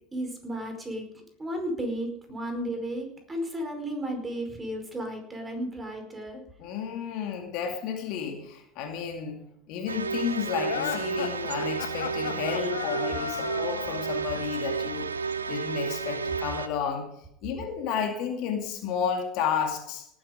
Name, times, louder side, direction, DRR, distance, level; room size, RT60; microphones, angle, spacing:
voice 1, 0.1-6.4, right 1 dB, 15° right, 4 dB, 5.0 m, -34 dB
voice 2, 6.6-15.1 15.5-17.1 17.4-20.1, left 7 dB, 55° left, 5 dB, 2.4 m, -32 dB
sound 1, 9.9-16.7, right 5 dB, 85° right, 0.7 m, -32 dB
sound 2, 10.6-14.2, left 8 dB, 75° left, 1.6 m, -34 dB
18.5 x 8.8 x 5.2 m, 0.74 s
hypercardioid pair, 80°, 0 cm